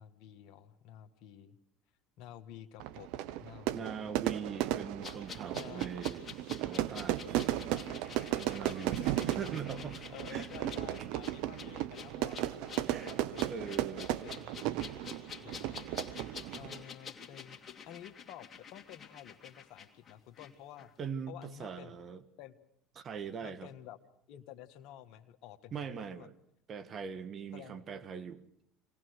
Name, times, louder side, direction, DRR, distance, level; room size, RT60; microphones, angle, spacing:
voice 1, 0.0-1.6 2.2-3.1 3.4-4.1 5.5-6.0 8.6-8.9 9.6-13.7 14.2-14.5 15.4-15.9 16.5-17.6 17.9-20.9 21.3-21.9 22.4-22.5 23.4-24.0 24.3-26.3 27.5-27.8, left 11 dB, 65° left, 10 dB, 1.5 m, -51 dB
Fire / Fireworks, 2.8-16.8, right 14 dB, 70° right, 0.9 m, -35 dB
voice 2, 3.7-6.3 6.6-7.3 8.3-9.0 9.4-10.7 12.9-13.1 13.5-14.1 21.0-22.2 23.0-23.7 25.7-26.3 26.7-28.4, right 6 dB, 45° right, 12 dB, 1.5 m, -41 dB
sound 1, 5.0-20.5 20.8-20.9, left 6 dB, 35° left, 2.6 m, -49 dB
25.0 x 19.0 x 6.5 m, 0.73 s
hypercardioid pair, 80°, 0 cm